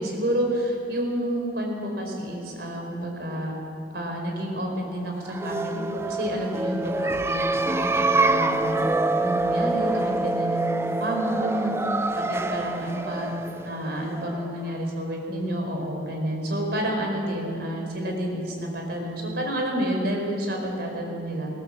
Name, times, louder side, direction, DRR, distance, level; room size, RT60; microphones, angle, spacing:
voice 1, 0.0-3.6 3.9-8.9 9.2-11.8 12.1-13.3 13.6-21.5, right 1 dB, 60° right, 1 dB, 4.8 m, -29 dB
sound 1, 5.2-14.7, right 2 dB, 15° right, 0.5 m, -26 dB
21.0 x 17.0 x 7.5 m, 2.9 s
head